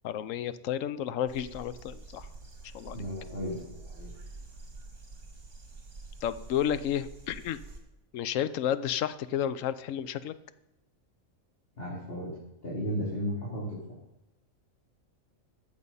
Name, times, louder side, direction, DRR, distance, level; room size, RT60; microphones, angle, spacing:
voice 1, 0.0-2.3 2.7-3.0 6.2-7.6 8.1-10.3, left 10 dB, 75° left, 14 dB, 1.0 m, -31 dB
sound 1, 1.3-7.8, right 3 dB, 60° right, 2.3 m, -47 dB
voice 2, 2.9-4.1 11.8-12.3 12.6-13.7, equal, 45° left, -7 dB, 3.3 m, -34 dB
14.5 x 7.1 x 5.5 m, 0.93 s
omnidirectional pair, 1.4 m